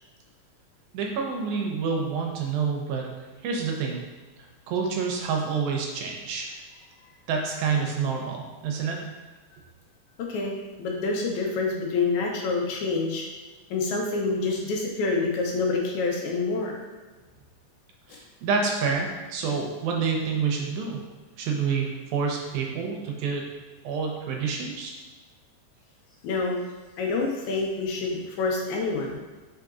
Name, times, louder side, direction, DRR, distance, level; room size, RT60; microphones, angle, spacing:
voice 1, 0.9-3.0 3.4-4.0 4.7-6.5 7.3-9.0 18.1-21.0 21.4-23.4 23.8-24.9, right 5 dB, 80° right, 0 dB, 2.0 m, -28 dB
voice 2, 10.3-13.3 13.7-16.8 18.1-18.2 26.2-26.6 27.0-29.2, left 3 dB, 75° left, 0 dB, 1.9 m, -27 dB
4.6 x 3.7 x 2.4 m, 1.3 s
omnidirectional pair, 3.7 m